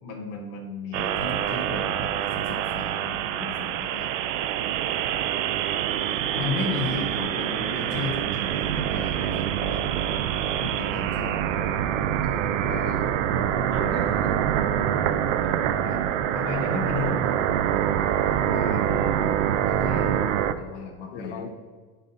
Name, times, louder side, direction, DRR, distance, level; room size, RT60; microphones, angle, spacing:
voice 1, 0.0-4.1 6.3-9.8 10.5-11.4 13.8-15.1 15.5-17.2 19.7-20.2 20.5-21.5, left 4 dB, 20° left, -1 dB, 0.3 m, -35 dB
sound 1, 0.9-20.5, right 10 dB, 65° right, 0.5 m, -25 dB
voice 2, 12.7-13.1 13.7-13.9 18.4-19.2 21.1-21.5, left 5 dB, 45° left, 5 dB, 1.0 m, -36 dB
10.0 x 4.2 x 3.8 m, 1.5 s
supercardioid pair, 170°, 41 cm